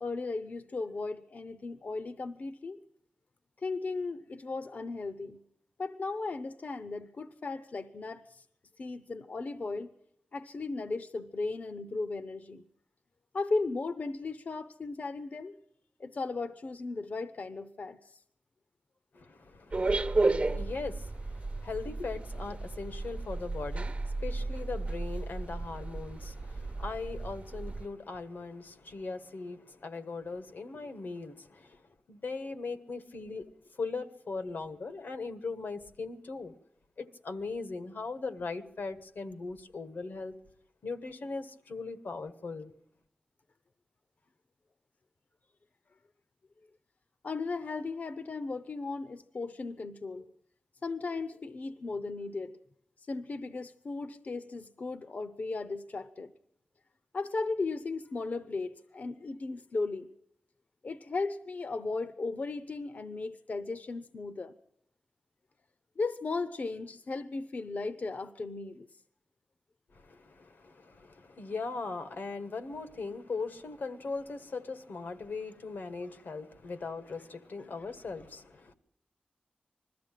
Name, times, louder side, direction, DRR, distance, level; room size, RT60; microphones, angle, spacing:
voice 1, 0.0-2.8 3.6-5.4 5.8-8.4 8.8-9.9 10.3-12.6 13.3-15.6 16.0-18.2 47.2-50.2 50.8-52.6 53.0-56.3 57.1-60.1 60.8-64.5 66.0-69.0, left 3 dB, 55° left, 0.7 m, -36 dB
voice 2, 19.1-33.5 33.8-36.5 37.0-40.3 40.8-42.7 69.9-78.7, left 4 dB, 85° left, 1.4 m, -39 dB
sound 1, 19.7-27.9, right 3 dB, 40° right, 0.7 m, -33 dB
21.0 x 14.0 x 9.1 m
wide cardioid pair, 105°, 3 cm